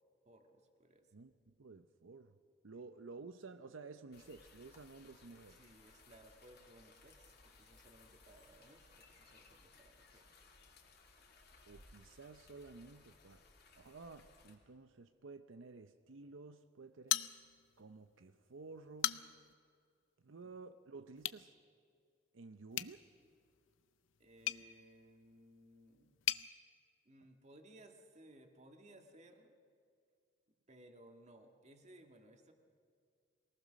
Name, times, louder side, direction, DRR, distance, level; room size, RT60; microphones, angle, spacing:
voice 1, 0.3-1.1 2.7-2.8 5.5-10.3 24.2-26.2 27.1-29.5 30.7-32.5, right 1 dB, 35° right, 4 dB, 1.8 m, -61 dB
voice 2, 1.1-2.4 2.6-5.6 11.7-13.4 13.8-17.2 17.8-19.2 20.2-21.5 22.3-23.1, right 3 dB, 80° right, 9 dB, 0.7 m, -53 dB
sound 1, 4.1-14.5, left 3 dB, 55° left, 2.7 m, -63 dB
sound 2, 17.1-17.8 18.2-18.3 18.8-19.5 21.2-21.4 22.7-26.5, left 13 dB, 80° left, 0.6 m, -40 dB
23.5 x 18.5 x 6.4 m, 2.2 s
head